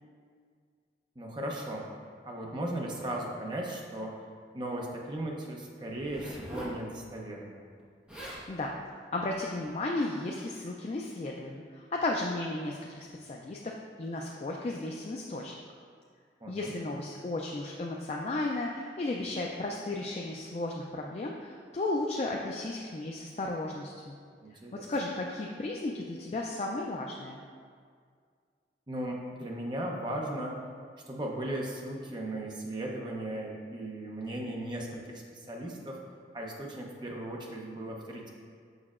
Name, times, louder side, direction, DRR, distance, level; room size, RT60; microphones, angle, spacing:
voice 1, 1.2-4.1 4.5-7.6 16.4-16.7 24.4-24.9 28.9-30.6 31.1-36.0 36.3-38.3, right 1 dB, 25° right, -1 dB, 0.7 m, -37 dB
Zipper (clothing), 5.9-6.8 7.8-7.9 8.1-8.5 9.2-9.4, equal, 5° right, 1.0 m, -42 dB
voice 2, 8.1-8.8 9.1-15.6 16.5-24.2 24.7-27.4, left 2 dB, 35° left, -1 dB, 0.3 m, -34 dB
6.4 x 5.9 x 2.4 m, 2.1 s
head